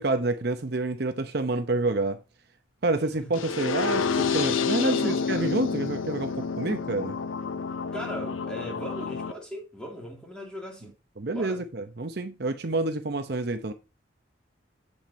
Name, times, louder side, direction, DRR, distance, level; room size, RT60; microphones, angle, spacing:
voice 1, 0.0-2.2 2.8-7.2 11.2-13.7, right 2 dB, 55° right, 0.7 m, -28 dB
sound 1, 3.3-9.3, left 5 dB, 85° left, 0.5 m, -29 dB
voice 2, 4.7-5.6 7.9-10.9 11.3-11.6, equal, 5° left, 2.5 m, -38 dB
7.9 x 7.2 x 2.7 m
head